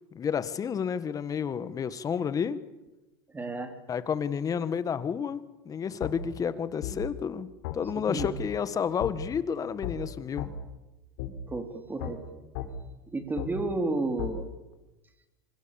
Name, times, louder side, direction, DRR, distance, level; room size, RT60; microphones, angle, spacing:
voice 1, 0.1-2.6 3.9-7.5 7.7-10.5, left 7 dB, 30° left, 14 dB, 1.6 m, -30 dB
voice 2, 3.3-3.8 8.1-8.3 11.5-12.2 13.1-14.5, right 2 dB, 15° right, 7 dB, 4.2 m, -31 dB
sound 1, 6.0-6.1 6.8-7.0 7.6-7.8 8.2-8.3 9.0-9.1 9.8-10.0 10.4-10.5 11.2-11.3 12.0-12.1 12.5-12.7 13.4-13.5 14.2-14.3, left 14 dB, 70° left, 4.0 m, -34 dB
25.5 x 25.5 x 7.2 m, 1.0 s
supercardioid pair, 105°, 12 cm